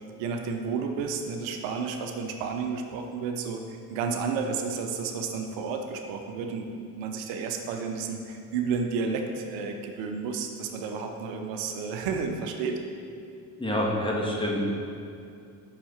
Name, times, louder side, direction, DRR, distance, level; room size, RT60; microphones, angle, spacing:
voice 1, 0.0-12.8, right 5 dB, 80° right, 4 dB, 0.9 m, -31 dB
voice 2, 13.6-14.7, equal, 10° left, -3 dB, 2.0 m, -27 dB
6.9 x 5.8 x 5.9 m, 2.5 s
hypercardioid pair, 55°, 44 cm